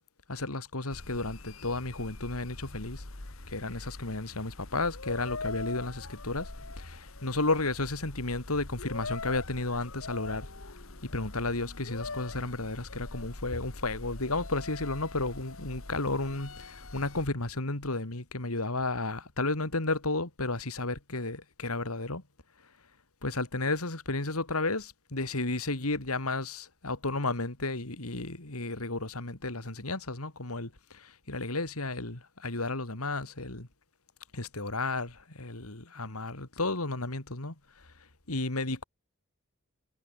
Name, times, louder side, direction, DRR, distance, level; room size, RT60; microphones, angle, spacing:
voice 1, 0.3-3.0 3.5-6.5 6.8-10.5 11.0-22.2 23.2-33.7 34.3-37.5 38.3-38.8, left 2 dB, 90° left, 3.2 m, -33 dB
sound 1, 0.9-17.3, left 3 dB, 70° left, 2.1 m, -43 dB
head